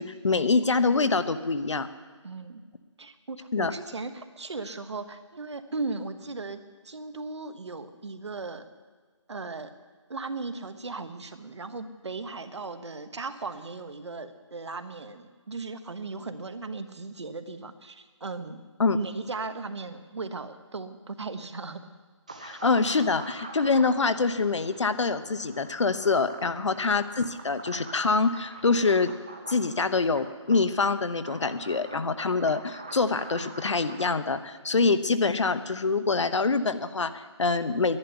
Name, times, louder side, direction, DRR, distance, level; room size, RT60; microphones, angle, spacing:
voice 1, 0.0-1.9 3.5-3.7 18.8-19.0 22.4-29.1 29.5-38.0, left 4 dB, 70° left, 12 dB, 1.0 m, -25 dB
voice 2, 2.2-2.6 3.0-8.7 9.3-9.7 10.1-18.6 18.9-21.9 26.5-27.0, right 3 dB, 60° right, 9 dB, 1.2 m, -37 dB
sound 1, 22.3-34.1, right 2 dB, 15° right, 0.5 m, -45 dB
11.0 x 10.0 x 9.9 m, 1.4 s
hypercardioid pair, 175°, 16 cm